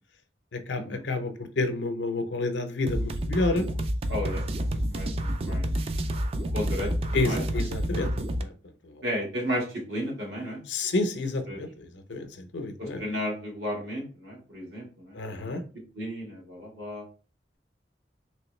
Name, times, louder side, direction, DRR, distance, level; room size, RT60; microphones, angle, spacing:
voice 1, 0.5-3.7 7.1-8.1 8.4-8.5 8.8-8.9 10.7-13.0 15.1-15.6, left 2 dB, 85° left, 7 dB, 0.6 m, -29 dB
sound 1, 2.9-8.4, right 1 dB, 35° right, 0.3 m, -29 dB
voice 2, 4.1-4.4 4.7-5.7 6.5-7.4 9.0-10.6 11.5-11.6 12.8-15.6 15.9-17.0, equal, 80° right, -1 dB, 1.6 m, -34 dB
3.3 x 3.0 x 3.1 m, 0.36 s
head